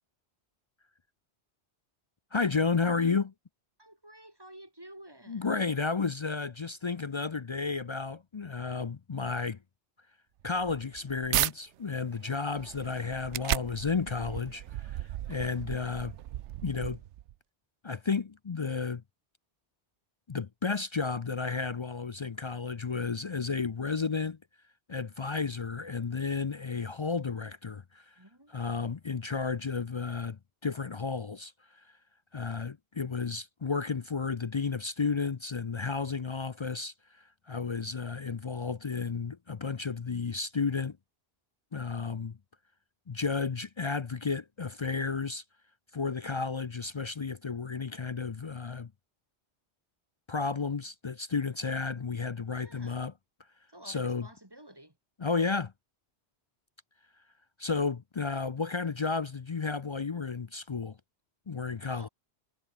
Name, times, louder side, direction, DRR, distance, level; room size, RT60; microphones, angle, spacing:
voice 1, 2.3-3.3 5.3-9.6 10.4-15.0 15.3-16.2 16.6-17.0 17.8-19.0 20.3-24.4 24.9-28.1 28.5-31.5 32.3-41.0 41.7-42.4 43.1-45.4 45.9-48.9 50.3-53.1 53.9-54.3 55.2-55.7 57.6-61.0 61.5-62.1, left 4 dB, 40° left, 0.4 m, -32 dB
voice 2, 3.8-5.6 28.2-29.1 52.5-53.1 53.7-55.0 61.8-62.1, right 1 dB, 20° right, 3.1 m, -52 dB
sound 1, 10.4-11.5 12.1-17.3, right 13 dB, 90° right, 0.9 m, -35 dB
omnidirectional pair, 1.1 m